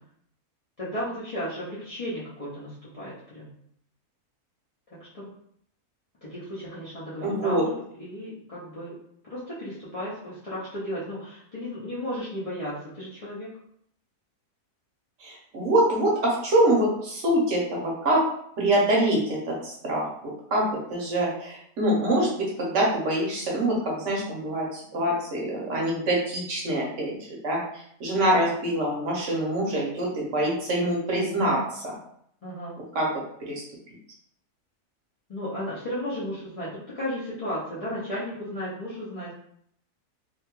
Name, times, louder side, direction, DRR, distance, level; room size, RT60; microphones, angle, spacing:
voice 1, 0.8-3.5 4.9-5.3 6.2-9.0 9.3-13.5 32.4-32.8 35.3-39.3, equal, 60° left, -10 dB, 0.3 m, -34 dB
voice 2, 7.2-7.6 15.2-18.2 18.6-20.1 20.5-27.2 27.4-31.8 32.9-33.1 33.5-33.6, right 1 dB, 60° right, -3 dB, 1.0 m, -25 dB
2.8 x 2.2 x 2.9 m, 0.68 s
omnidirectional pair, 1.6 m